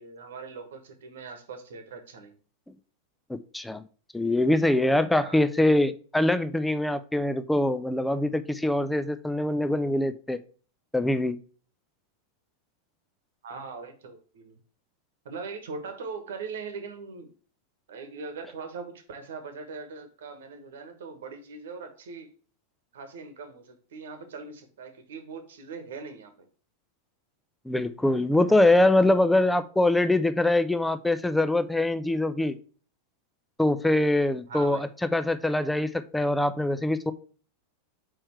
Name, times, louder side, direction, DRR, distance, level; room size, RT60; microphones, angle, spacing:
voice 1, 0.0-2.3 5.2-5.4 13.4-14.6 15.2-17.3 17.9-22.3 22.9-26.3 34.5-34.9, right 4 dB, 60° right, 8 dB, 1.2 m, -40 dB
voice 2, 3.3-3.8 4.1-10.4 10.9-11.4 27.7-32.6 33.6-37.1, left 1 dB, 5° left, 12 dB, 0.5 m, -23 dB
4.9 x 4.4 x 4.4 m, 0.40 s
figure-of-eight pair, 90°, 0 cm